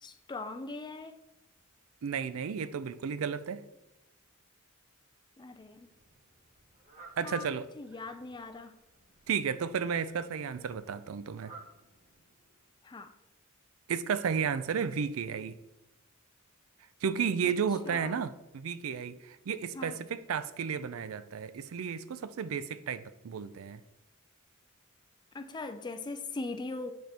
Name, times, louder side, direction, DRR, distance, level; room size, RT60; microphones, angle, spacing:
voice 1, 0.0-1.1 5.4-5.9 7.2-7.5 7.8-8.7 12.8-13.1 17.4-17.5 17.9-18.3 19.7-20.0 25.3-26.9, left 3 dB, 20° left, 0.4 m, -40 dB
voice 2, 2.0-3.6 7.2-7.7 9.3-11.5 13.9-15.6 17.0-23.8, right 7 dB, 75° right, 0.4 m, -33 dB
Fowl, 5.4-12.8, right 3 dB, 35° right, 1.3 m, -58 dB
8.8 x 4.3 x 3.4 m
head